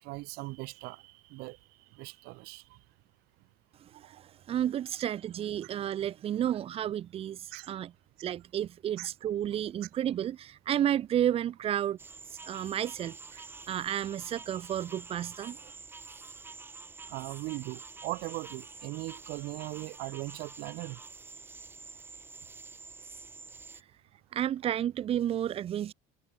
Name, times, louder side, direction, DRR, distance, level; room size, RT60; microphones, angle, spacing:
voice 1, 0.0-2.8 4.0-4.2 5.6-5.7 7.5-7.7 9.0-9.1 17.1-21.0, right 24 dB, 55° right, 7.9 m, -40 dB
voice 2, 3.8-7.9 8.2-12.0 12.3-15.7 24.3-25.9, right 10 dB, 30° right, 6.2 m, -32 dB
sound 1, 12.0-23.8, right 4 dB, 10° right, 4.7 m, -48 dB
cardioid pair, 175°, 19 cm